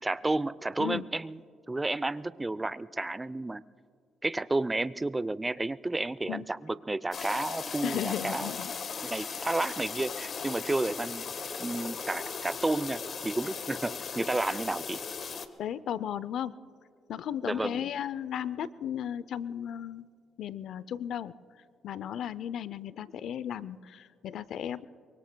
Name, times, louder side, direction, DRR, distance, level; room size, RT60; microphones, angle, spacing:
voice 1, 0.0-1.4 1.7-3.6 4.2-8.5 9.0-11.2 11.6-15.0 17.4-17.8, right 2 dB, 15° right, 17 dB, 0.4 m, -31 dB
sound 1, 7.1-15.5, left 5 dB, 50° left, 0.9 m, -37 dB
voice 2, 7.8-8.7 15.6-16.5 17.1-20.1 20.4-21.3 21.8-24.8, left 10 dB, 75° left, 17 dB, 0.5 m, -35 dB
24.5 x 23.5 x 2.2 m, 2.2 s
cardioid pair, 90°, 0 cm